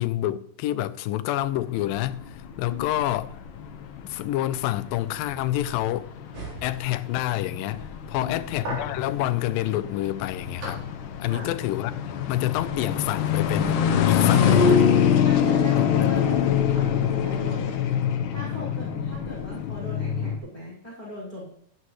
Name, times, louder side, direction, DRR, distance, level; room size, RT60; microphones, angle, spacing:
voice 1, 0.0-3.3 4.0-6.1 6.6-10.8 11.2-12.0 12.3-14.8 15.8-16.2, left 14 dB, 90° left, 2.4 m, -28 dB
sound 1, 1.4-20.4, left 8 dB, 75° left, 2.3 m, -25 dB
voice 2, 2.6-3.0 8.1-8.4 11.2-11.5 14.2-14.8 15.2-17.9 18.3-21.5, left 1 dB, 10° left, 5.0 m, -39 dB
sound 2, 6.3-11.7, right 2 dB, 90° right, 5.6 m, -40 dB
13.0 x 10.0 x 3.2 m
omnidirectional pair, 3.9 m